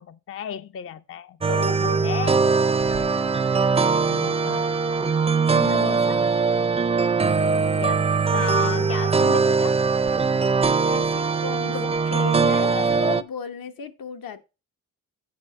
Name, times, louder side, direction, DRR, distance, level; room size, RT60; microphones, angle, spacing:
voice 1, 0.0-2.4 4.0-4.6 7.8-9.8 11.7-11.9 12.7-12.9, left 8 dB, 40° left, 0.4 m, -33 dB
sound 1, 1.4-13.2, right 4 dB, 20° right, 0.4 m, -21 dB
sound 2, 2.2-13.0, right 13 dB, 80° right, 0.5 m, -38 dB
voice 2, 5.6-6.3 10.8-14.4, left 6 dB, 75° left, 1.0 m, -35 dB
8.7 x 5.0 x 5.4 m
cardioid pair, 95°, 35 cm